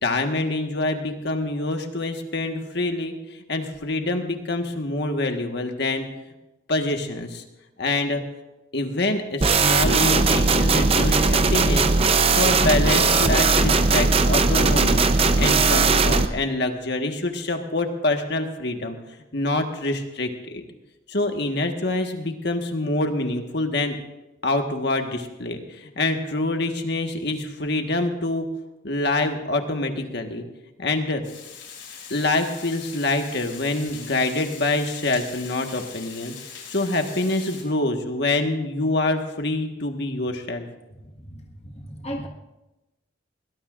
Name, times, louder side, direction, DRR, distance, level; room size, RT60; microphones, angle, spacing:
voice 1, 0.0-3.1 3.5-6.1 6.7-7.4 7.8-8.2 8.7-11.9 12.4-19.0 19.3-20.6 21.1-24.0 24.4-28.4 28.8-30.4 30.8-31.2 32.1-36.3 36.7-40.6, left 2 dB, 55° left, 4 dB, 1.5 m, -25 dB
sound 1, 9.4-16.3, right 4 dB, 30° right, 0.7 m, -19 dB
Water, 31.2-37.6, left 6 dB, 80° left, 6.6 m, -41 dB
voice 2, 40.9-42.3, equal, 30° left, 0 dB, 1.5 m, -37 dB
21.5 x 19.5 x 2.5 m, 1.0 s
head